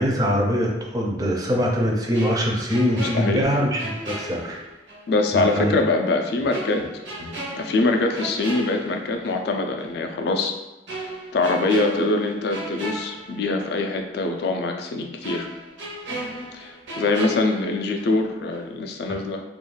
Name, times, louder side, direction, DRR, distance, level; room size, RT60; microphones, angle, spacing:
voice 1, 0.0-4.6 5.3-5.7 7.2-7.3, equal, 20° right, -1 dB, 0.4 m, -23 dB
sound 1, 2.1-5.1 5.4-5.6 6.5-9.5 9.8-10.0 10.9-13.9 14.2-14.3 15.2-18.3 18.5-18.8, right 1 dB, 80° right, 0.7 m, -36 dB
voice 2, 3.1-3.5 5.1-6.8 7.5-10.5 11.0-15.5 16.5-19.4, left 2 dB, 60° left, 4 dB, 0.3 m, -23 dB
2.3 x 2.2 x 3.1 m, 1.0 s
head